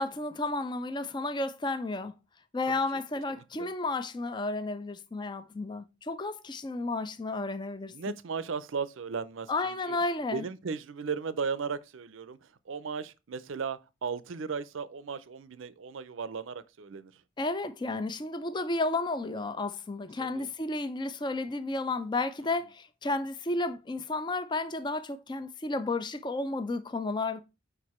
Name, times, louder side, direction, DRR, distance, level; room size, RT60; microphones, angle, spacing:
voice 1, 0.0-2.1 2.5-7.9 9.5-10.4 17.4-27.4, left 2 dB, 20° left, 0.4 m, -32 dB
voice 2, 2.7-3.0 3.3-3.7 7.9-10.0 10.3-17.2 20.2-20.5 22.4-22.5, right 5 dB, 75° right, 0.5 m, -36 dB
4.9 x 4.7 x 4.2 m
head